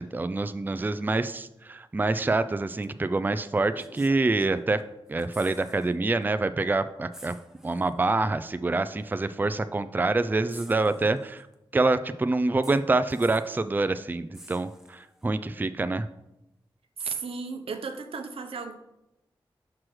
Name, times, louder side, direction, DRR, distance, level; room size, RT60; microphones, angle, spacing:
voice 1, 0.0-4.8 5.1-7.3 7.6-11.5 11.7-16.1, right 3 dB, 20° right, 11 dB, 0.3 m, -26 dB
sound 1, 2.8-3.0 3.7-4.8 5.1-5.9 6.2-6.4 7.1-8.0 9.0-9.1 10.5-11.5 12.6-13.6 14.3-15.3 17.0-17.1, equal, 5° right, 0.9 m, -50 dB
voice 2, 17.0-18.7, right 5 dB, 90° right, 5 dB, 0.7 m, -34 dB
6.1 x 6.0 x 3.1 m, 0.88 s
cardioid pair, 45°, 9 cm